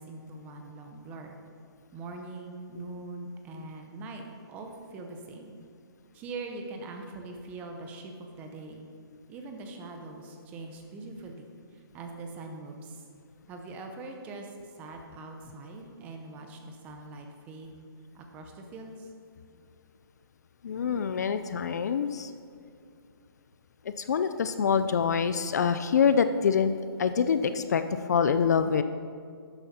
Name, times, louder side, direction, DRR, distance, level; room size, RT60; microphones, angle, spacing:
voice 1, 0.0-1.4 1.9-4.2 4.5-5.5 6.1-8.9 9.3-13.0 13.5-17.7 18.1-19.1, right 3 dB, 10° right, 3 dB, 0.7 m, -42 dB
voice 2, 20.6-22.3 24.0-26.7 27.0-28.8, left 6 dB, 45° left, 11 dB, 0.4 m, -25 dB
12.5 x 9.0 x 4.2 m, 2.3 s
hypercardioid pair, 165°, 13 cm